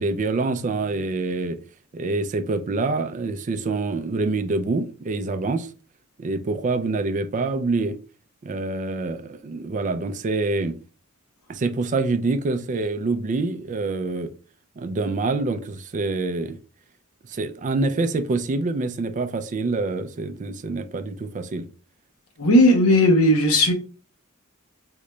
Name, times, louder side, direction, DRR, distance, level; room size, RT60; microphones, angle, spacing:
voice 1, 0.0-1.6 1.9-5.7 6.2-8.0 8.4-10.8 11.5-14.3 14.8-16.6 17.3-21.7, right 3 dB, 35° right, 0.3 m, -26 dB
voice 2, 22.4-23.7, left 1 dB, 80° left, 0.8 m, -16 dB
3.7 x 2.2 x 3.1 m
head